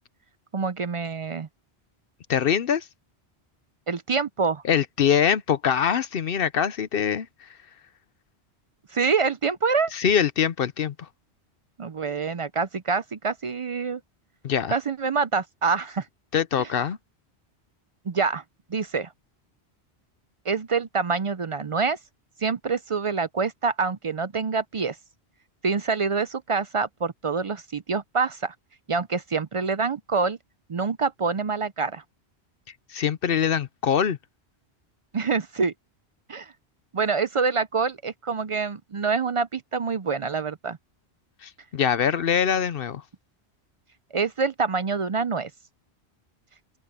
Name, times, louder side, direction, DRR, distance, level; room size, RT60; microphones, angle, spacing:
voice 1, 0.5-1.5 3.9-4.6 8.9-9.9 11.8-14.0 14.7-16.1 16.6-16.7 18.1-18.4 18.7-19.1 20.5-22.0 22.4-25.0 25.6-28.5 28.9-30.4 30.7-32.0 35.1-35.7 36.3-36.5 36.9-40.8 44.1-45.5, right 5 dB, 45° right, 0.4 m, -26 dB
voice 2, 2.3-2.9 4.6-7.3 9.9-11.1 14.4-14.8 16.3-17.0 32.9-34.2 41.4-43.0, left 8 dB, 60° left, 0.9 m, -23 dB
open air
omnidirectional pair, 1.1 m